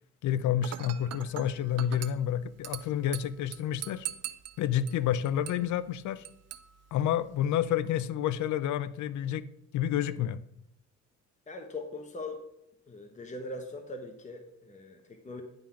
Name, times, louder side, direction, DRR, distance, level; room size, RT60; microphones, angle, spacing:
voice 1, 0.2-4.1 4.6-6.2 6.9-9.4 9.7-10.4, left 10 dB, 75° left, 17 dB, 0.5 m, -29 dB
Dishes pots and pans / Glass, 0.6-7.6, right 11 dB, 55° right, 0.6 m, -44 dB
voice 2, 11.5-12.4 12.9-15.4, left 2 dB, 25° left, 4 dB, 1.0 m, -41 dB
10.0 x 3.9 x 5.7 m, 0.80 s
cardioid pair, 90°, 30 cm